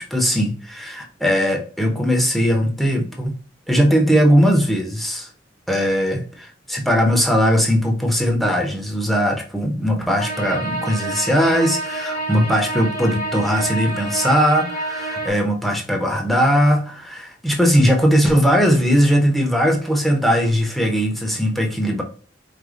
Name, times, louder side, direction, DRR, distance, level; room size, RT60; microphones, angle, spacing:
voice 1, 0.0-3.3 3.7-5.3 5.7-22.0, equal, ahead, 1 dB, 0.7 m, -19 dB
sound 1, 10.2-15.3, right 2 dB, 90° left, 2.1 m, -28 dB
4.9 x 2.2 x 3.7 m, 0.42 s
head